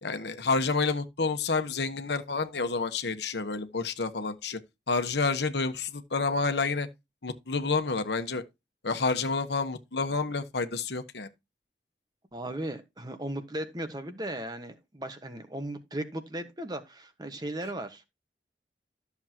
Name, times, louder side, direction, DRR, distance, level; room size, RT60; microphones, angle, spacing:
voice 1, 0.0-4.6 4.9-6.9 7.2-8.4 8.8-11.3, left 4 dB, 75° left, 1.2 m, -29 dB
voice 2, 12.3-18.1, right 1 dB, 25° right, 1.4 m, -36 dB
13.0 x 7.1 x 2.9 m
head